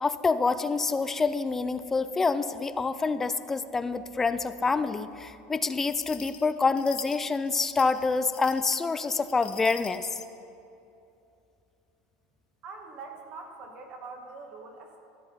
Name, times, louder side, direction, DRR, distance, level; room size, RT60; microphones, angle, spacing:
voice 1, 0.0-10.1, left 4 dB, 15° left, 12 dB, 0.4 m, -27 dB
sound 1, 5.9-10.3, left 9 dB, 45° left, 0.9 m, -45 dB
voice 2, 12.6-15.0, right 4 dB, 45° right, 2 dB, 1.7 m, -43 dB
14.0 x 7.7 x 5.6 m, 2.8 s
supercardioid pair, 135°, 2 cm